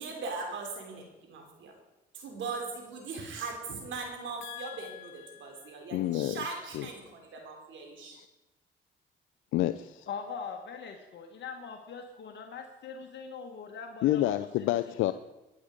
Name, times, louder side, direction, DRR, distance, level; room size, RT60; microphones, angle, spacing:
voice 1, 0.0-1.7 2.1-8.2, right 4 dB, 75° right, 2 dB, 3.3 m, -39 dB
voice 2, 4.4-6.4 6.7-6.9 8.1-8.3 9.5-10.1 14.0-15.1, left 14 dB, 85° left, 12 dB, 0.5 m, -30 dB
voice 3, 10.1-14.7, left 5 dB, 65° left, 3 dB, 1.7 m, -42 dB
20.0 x 9.8 x 5.1 m, 1.1 s
cardioid pair, 90°, 20 cm